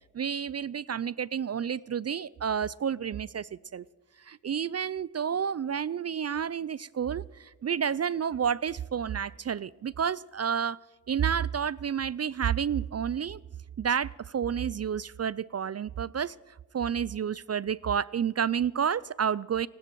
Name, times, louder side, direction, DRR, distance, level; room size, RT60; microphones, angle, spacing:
voice 1, 0.1-3.8 4.3-10.8 11.1-13.4 13.8-16.3 16.7-19.7, right 8 dB, 40° right, 22 dB, 0.4 m, -30 dB
28.5 x 10.5 x 4.6 m, 1.3 s
cardioid pair, 40°, 41 cm